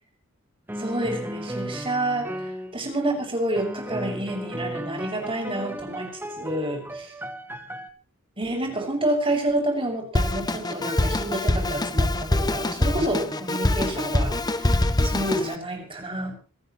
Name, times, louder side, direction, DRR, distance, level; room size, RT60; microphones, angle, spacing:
sound 1, 0.7-2.8 3.6-7.9, equal, 10° right, 1.5 m, -35 dB
voice 1, 0.8-6.1 6.4-7.1 8.4-16.3, right 1 dB, 25° right, 1 dB, 6.7 m, -29 dB
Drum kit, 10.1-15.5, left 1 dB, 20° left, 0.9 m, -24 dB
27.5 x 15.5 x 3.2 m, 0.35 s
head